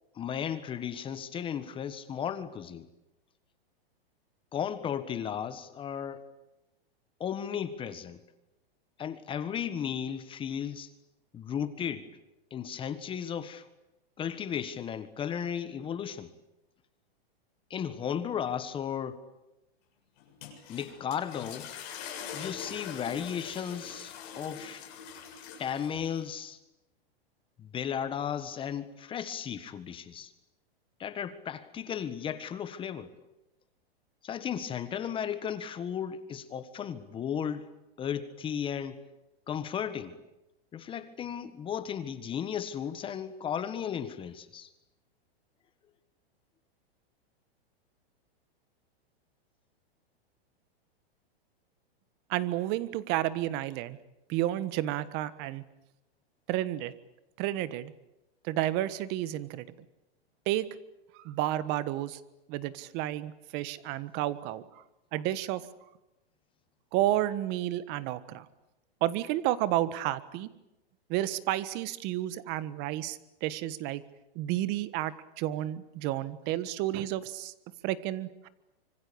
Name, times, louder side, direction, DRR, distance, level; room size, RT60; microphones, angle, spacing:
voice 1, 0.1-2.9 4.5-6.2 7.2-8.2 9.0-10.9 11.3-12.1 12.5-13.6 14.2-16.3 17.7-19.2 20.7-21.7 22.3-24.8 25.6-26.6 27.6-30.3 31.0-33.1 34.2-37.7 38.0-39.0 39.5-40.2 40.7-44.7, left 8 dB, 15° left, 1.5 m, -35 dB
sound 1, 20.2-26.2, left 7 dB, 45° left, 7.4 m, -43 dB
voice 2, 52.3-54.0 54.3-55.6 56.5-56.9 57.4-57.9 58.4-59.7 60.5-60.7 61.1-62.2 62.5-64.6 65.1-65.7 66.9-68.5 69.0-70.5 71.1-74.0 74.3-77.5 77.8-78.5, right 14 dB, 35° right, 1.5 m, -31 dB
26.0 x 25.0 x 8.6 m
hypercardioid pair, 150°, 31 cm